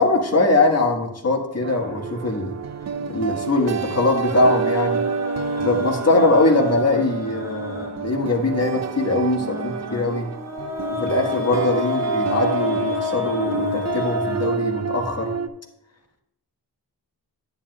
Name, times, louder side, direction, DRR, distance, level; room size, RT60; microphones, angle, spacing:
voice 1, 0.0-2.5 3.1-5.1 5.6-10.3 10.9-15.3, left 2 dB, 40° left, 2 dB, 1.5 m, -21 dB
sound 1, 1.6-15.5, right 5 dB, 45° right, 0.5 m, -28 dB
sound 2, 4.2-8.3 9.4-15.2, left 4 dB, 5° right, 2.1 m, -31 dB
9.9 x 9.4 x 2.3 m, 0.84 s
wide cardioid pair, 105°, 40 cm